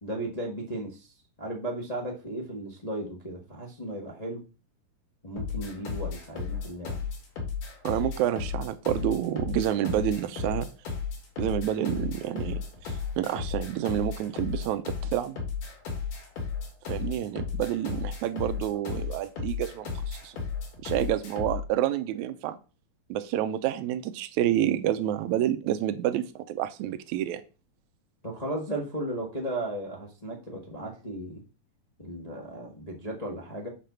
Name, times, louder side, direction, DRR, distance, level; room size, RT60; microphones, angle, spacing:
voice 1, 0.0-1.1 1.4-4.4 5.2-7.0 28.2-31.4 32.0-33.7, right 1 dB, 45° left, -2 dB, 0.5 m, -35 dB
sound 1, 5.4-21.7, left 5 dB, 70° left, 3.8 m, -34 dB
voice 2, 7.8-10.7 11.4-15.4 16.9-20.4 20.8-22.6 23.1-27.4, right 12 dB, 75° right, 10 dB, 1.9 m, -29 dB
7.6 x 4.2 x 6.9 m, 0.33 s
omnidirectional pair, 4.0 m